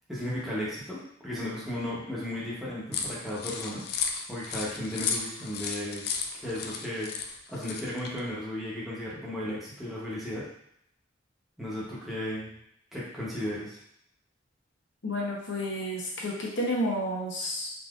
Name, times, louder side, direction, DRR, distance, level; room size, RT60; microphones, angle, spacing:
voice 1, 0.1-3.8 4.3-6.0 6.3-7.1 7.5-10.5 11.6-12.5 12.9-13.8, left 1 dB, ahead, -8 dB, 0.9 m, -35 dB
sound 1, 2.9-8.2, left 6 dB, 55° left, 0.3 m, -34 dB
voice 2, 15.0-17.7, equal, 75° left, -3 dB, 0.9 m, -31 dB
3.8 x 2.7 x 2.4 m, 0.72 s
head